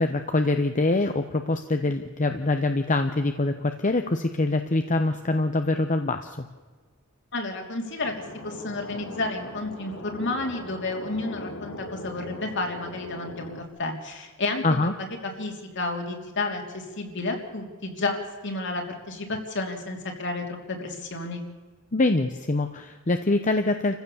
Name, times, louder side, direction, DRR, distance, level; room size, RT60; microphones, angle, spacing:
voice 1, 0.0-6.5 14.6-14.9 21.9-24.0, left 2 dB, 40° left, 7 dB, 0.9 m, -24 dB
voice 2, 7.3-8.1 8.4-21.4, left 2 dB, 60° left, 3 dB, 3.2 m, -31 dB
sound 1, 8.0-13.6, left 2 dB, 85° left, 2.5 m, -40 dB
28.0 x 15.5 x 7.0 m, 1.4 s
head